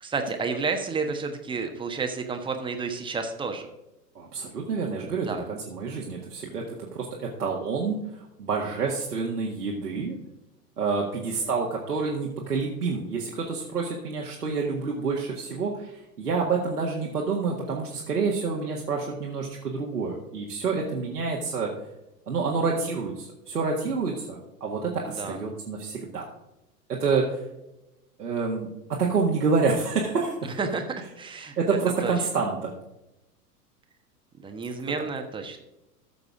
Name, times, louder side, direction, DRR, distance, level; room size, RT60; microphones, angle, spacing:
voice 1, 0.0-3.7 5.3-5.4 25.0-25.4 30.4-31.6 32.0-32.1 34.4-35.6, right 4 dB, 10° right, 5 dB, 1.3 m, -31 dB
voice 2, 4.2-10.2 10.8-21.7 22.3-26.3 26.9-27.4 28.2-28.7 29.0-30.4 31.6-32.7, right 4 dB, 75° right, -2 dB, 1.9 m, -28 dB
14.5 x 6.8 x 3.8 m, 0.93 s
figure-of-eight pair, 95°, 47 cm